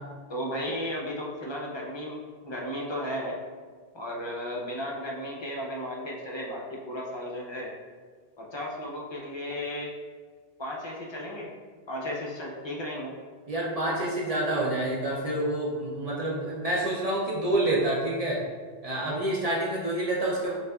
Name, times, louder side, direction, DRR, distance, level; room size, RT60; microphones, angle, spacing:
voice 1, 0.3-3.4 3.9-7.7 8.4-9.9 10.6-11.5 11.9-13.1, equal, 35° left, -2 dB, 0.5 m, -34 dB
voice 2, 13.5-18.4 18.8-20.5, right 1 dB, 45° right, -4 dB, 0.6 m, -28 dB
6.3 x 2.4 x 2.3 m, 1.5 s
omnidirectional pair, 1.1 m